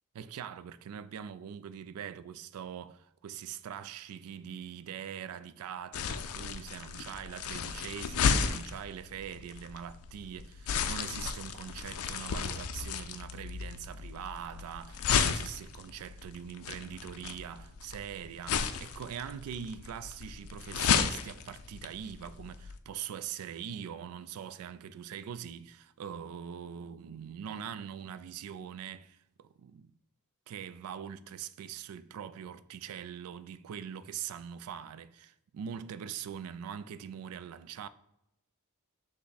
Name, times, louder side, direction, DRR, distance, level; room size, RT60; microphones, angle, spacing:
voice 1, 0.1-29.9 30.5-37.9, right 8 dB, 75° right, 0.3 m, -42 dB
sound 1, 5.9-22.8, left 6 dB, 70° left, 0.4 m, -34 dB
5.7 x 2.2 x 3.9 m
head